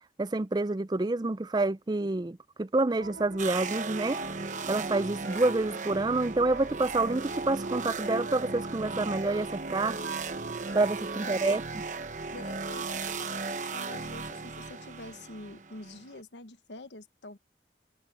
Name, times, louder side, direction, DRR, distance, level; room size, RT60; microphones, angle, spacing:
voice 1, 0.2-4.2 4.7-10.0 10.7-11.6, right 2 dB, 25° right, 0.4 m, -28 dB
sound 1, 3.0-11.6, right 3 dB, 90° right, 1.8 m, -46 dB
sound 2, 3.4-16.2, right 4 dB, 45° right, 1.0 m, -36 dB
voice 2, 11.1-11.6 12.3-17.4, left 2 dB, 90° left, 1.3 m, -46 dB
head